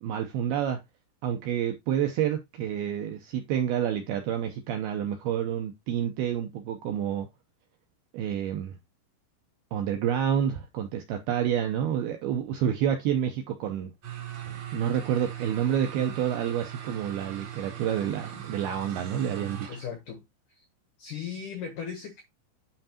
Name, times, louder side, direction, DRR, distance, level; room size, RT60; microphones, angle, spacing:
voice 1, 0.0-0.8 1.2-7.3 8.1-8.8 9.7-13.9 14.7-19.8, right 9 dB, 80° right, 2.3 m, -29 dB
sound 1, 14.0-20.0, right 10 dB, 45° right, 2.9 m, -40 dB
voice 2, 19.7-20.2 20.5-20.6 21.0-22.2, left 7 dB, 80° left, 1.8 m, -37 dB
8.8 x 5.7 x 2.9 m
omnidirectional pair, 5.4 m